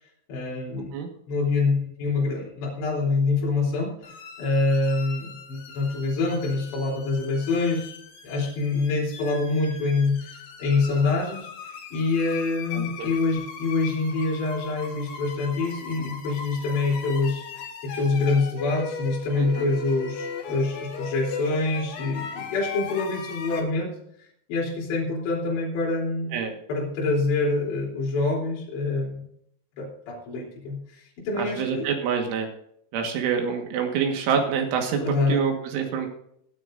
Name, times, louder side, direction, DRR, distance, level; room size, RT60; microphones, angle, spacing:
voice 1, 0.3-0.9 1.3-3.9 4.4-8.0 8.2-17.4 17.8-26.3 26.7-29.2 29.8-31.9 35.0-35.5, left 3 dB, 65° left, -4 dB, 5.6 m, -26 dB
sound 1, 4.0-23.6, left 5 dB, 90° left, 5.0 m, -39 dB
voice 2, 12.7-13.1 19.3-19.7 26.3-26.5 31.4-32.5 32.9-35.0 35.3-36.1, right 6 dB, 85° right, 2 dB, 4.1 m, -26 dB
19.5 x 13.0 x 2.6 m, 0.71 s
omnidirectional pair, 5.4 m